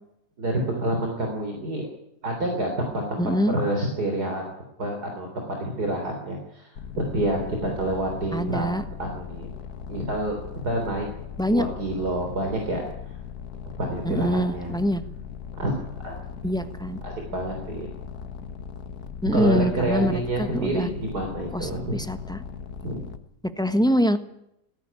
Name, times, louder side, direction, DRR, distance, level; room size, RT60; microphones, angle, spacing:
voice 1, 0.4-1.8 2.2-3.2 3.5-4.4 4.8-8.7 9.0-9.5 9.9-10.4 10.6-11.1 11.5-13.2 13.8-14.8 15.6-15.8 16.0-16.1 17.0-17.9 19.3-22.0 22.8-22.9, right 1 dB, 70° right, 2 dB, 4.1 m, -28 dB
voice 2, 3.2-3.5 8.3-8.8 11.4-11.7 14.0-15.0 16.4-17.0 19.2-20.9 21.5-22.4 23.4-24.2, equal, 5° left, 9 dB, 1.2 m, -24 dB
sound 1, 6.8-23.2, left 6 dB, 65° left, 1.8 m, -39 dB
18.0 x 16.0 x 9.9 m, 0.79 s
omnidirectional pair, 1.8 m